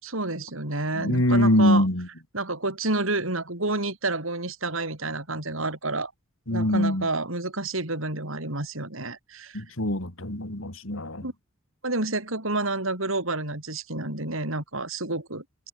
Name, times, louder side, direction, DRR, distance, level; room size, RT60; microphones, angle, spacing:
voice 1, 0.0-1.9 2.3-6.1 6.5-9.6 11.2-11.3 11.8-15.4, right 2 dB, 75° right, 6.1 m, -29 dB
voice 2, 1.0-2.1 6.5-7.1 9.5-11.2, left 1 dB, 75° left, 3.9 m, -23 dB
head